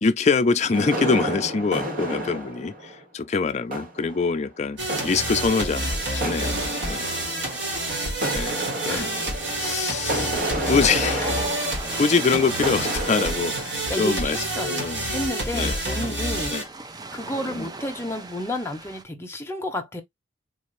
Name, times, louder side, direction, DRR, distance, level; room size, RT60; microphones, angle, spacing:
voice 1, 0.0-5.9 6.1-7.2 7.9-9.1 9.6-11.3 12.0-14.4 14.6-15.1 15.5-15.8 16.1-16.2 16.5-16.6 17.4-17.7, left 4 dB, 40° left, 0.4 m, -25 dB
sound 1, 0.7-3.0 3.6-4.4 4.9-13.8, right 1 dB, 50° right, 1.4 m, -31 dB
sound 2, 4.8-16.6, right 1 dB, 80° right, 1.6 m, -28 dB
voice 2, 8.9-9.3 11.2-11.4 13.9-14.8 15.1-16.6 17.1-20.0, left 1 dB, 15° left, 0.9 m, -31 dB
Ocean, 10.6-19.0, right 3 dB, 20° right, 0.4 m, -39 dB
4.1 x 2.5 x 3.1 m
head